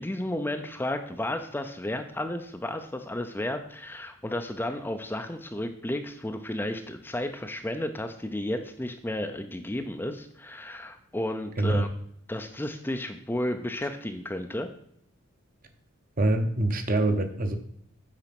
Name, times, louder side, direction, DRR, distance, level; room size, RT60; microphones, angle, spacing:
voice 1, 0.0-11.9 12.3-14.7, left 1 dB, 10° left, 6 dB, 0.5 m, -33 dB
voice 2, 16.2-17.6, right 2 dB, 40° right, 6 dB, 0.9 m, -24 dB
8.9 x 5.1 x 5.9 m, 0.67 s
head